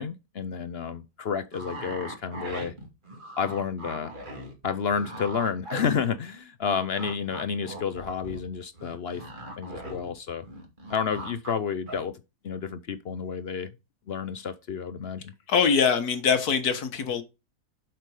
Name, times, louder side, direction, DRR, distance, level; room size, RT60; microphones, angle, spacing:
voice 1, 0.0-2.7 3.4-4.1 4.6-9.2 9.6-10.5 10.9-13.7 14.1-15.3, left 6 dB, 55° left, 0.7 m, -30 dB
sound 1, 1.5-6.4 6.6-10.1 10.4-11.5 11.9-12.0, right 1 dB, 30° right, 2.3 m, -40 dB
voice 2, 15.5-17.2, left 6 dB, 75° left, 1.8 m, -23 dB
7.9 x 6.0 x 4.8 m
omnidirectional pair, 1.6 m